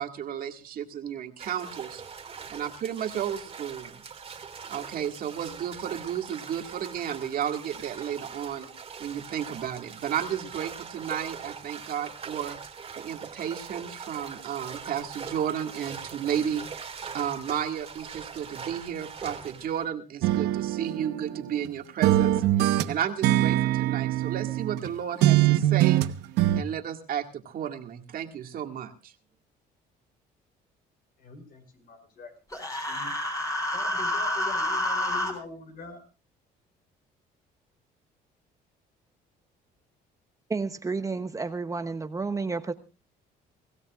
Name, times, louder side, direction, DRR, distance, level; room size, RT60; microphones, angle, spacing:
voice 1, 0.0-2.0 2.5-4.0 4.7-8.7 9.0-12.6 13.0-26.0 26.6-29.1, right 9 dB, 60° right, 5 dB, 2.0 m, -33 dB
sound 1, 1.4-19.8, right 6 dB, 35° right, 2.2 m, -42 dB
sound 2, 20.2-21.7 22.0-24.9 25.2-26.6, right 14 dB, 90° right, 1.0 m, -23 dB
voice 2, 31.2-32.3 32.7-33.1 33.7-36.0, left 4 dB, 60° left, 6 dB, 5.3 m, -44 dB
Human voice, 32.5-35.3, left 1 dB, 20° left, 4.7 m, -28 dB
voice 3, 40.5-42.7, right 4 dB, 20° right, 9 dB, 0.9 m, -31 dB
24.5 x 16.5 x 2.4 m, 0.31 s
cardioid pair, 110°, 17 cm